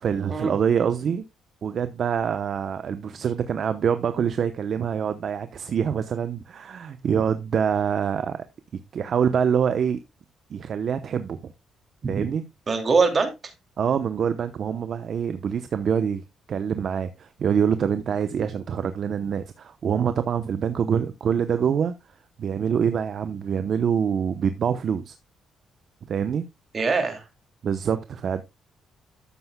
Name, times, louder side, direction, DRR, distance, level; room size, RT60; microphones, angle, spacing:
voice 1, 0.0-1.2 1.6-8.4 8.9-10.0 10.5-11.5 12.1-12.4 13.8-16.2 16.5-21.9 22.4-25.1 26.1-26.4 27.6-28.4, right 7 dB, 55° right, 0.8 m, -25 dB
voice 2, 12.7-13.3 26.7-27.2, right 4 dB, 35° right, 2.6 m, -22 dB
12.5 x 7.8 x 2.2 m
cardioid pair, 90°, 0 cm